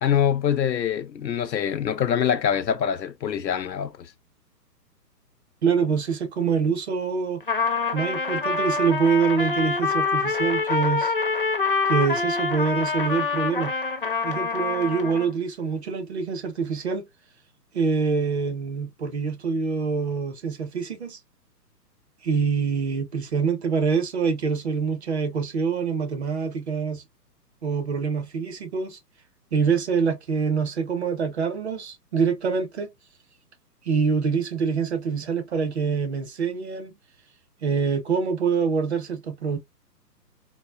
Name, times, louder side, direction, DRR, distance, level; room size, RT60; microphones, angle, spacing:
voice 1, 0.0-4.1, left 8 dB, 85° left, 0.6 m, -24 dB
voice 2, 5.6-7.4 7.9-11.1 11.8-13.7 14.2-17.0 17.7-21.2 22.2-27.0 27.6-29.0 29.5-32.9 33.8-36.9 37.6-39.6, right 5 dB, 40° right, 0.9 m, -25 dB
Trumpet, 7.4-15.3, left 4 dB, 35° left, 0.4 m, -25 dB
4.0 x 2.1 x 2.2 m
figure-of-eight pair, 130°, 50 cm